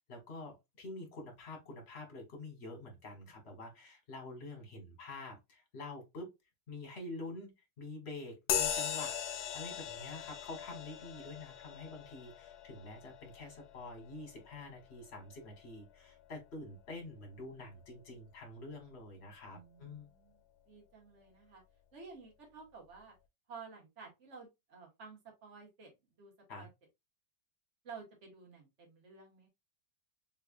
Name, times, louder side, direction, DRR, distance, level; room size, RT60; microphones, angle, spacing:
voice 1, 0.1-6.3 6.7-9.2 9.5-20.1 26.5-26.7, left 2 dB, 40° left, 1.4 m, -47 dB
sound 1, 8.5-16.4, left 9 dB, 70° left, 1.1 m, -40 dB
voice 2, 19.5-21.6 21.9-23.1 23.5-25.9 26.2-26.7 27.8-29.5, right 5 dB, 40° right, 1.7 m, -53 dB
3.6 x 3.3 x 2.4 m
omnidirectional pair, 1.9 m